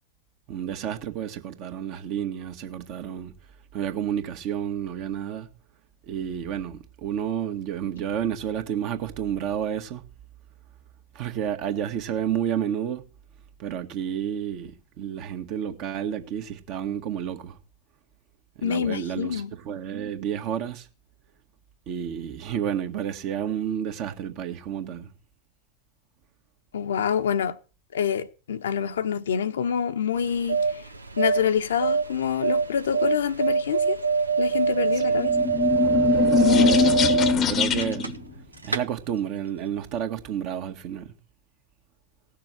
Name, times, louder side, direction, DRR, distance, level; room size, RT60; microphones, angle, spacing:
voice 1, 0.5-3.3 3.7-5.5 6.1-10.1 11.1-13.1 13.6-17.6 18.6-20.9 21.9-25.1 35.1-35.2 36.4-38.3 38.6-41.2, right 9 dB, 40° right, 1.7 m, -30 dB
voice 2, 18.6-19.5 26.7-27.6 27.9-30.8 31.2-34.0 34.4-35.4, left 8 dB, 65° left, 1.0 m, -26 dB
sound 1, 30.2-38.4 38.6-38.8, right 5 dB, 80° right, 0.9 m, -24 dB
sound 2, 35.0-38.1, left 6 dB, 30° left, 1.0 m, -22 dB
17.5 x 6.7 x 7.9 m
figure-of-eight pair, 90°, 0 cm